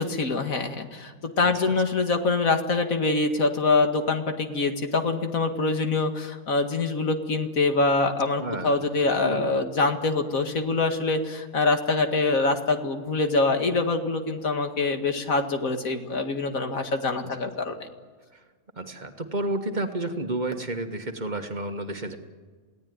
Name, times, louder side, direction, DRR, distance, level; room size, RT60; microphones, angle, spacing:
voice 1, 0.0-17.8, left 3 dB, 80° left, 5 dB, 2.4 m, -25 dB
voice 2, 8.4-8.8 9.2-9.5 17.2-17.3 18.8-22.2, right 2 dB, 35° right, 6 dB, 1.7 m, -31 dB
28.5 x 17.5 x 9.5 m, 1.4 s
omnidirectional pair, 1.4 m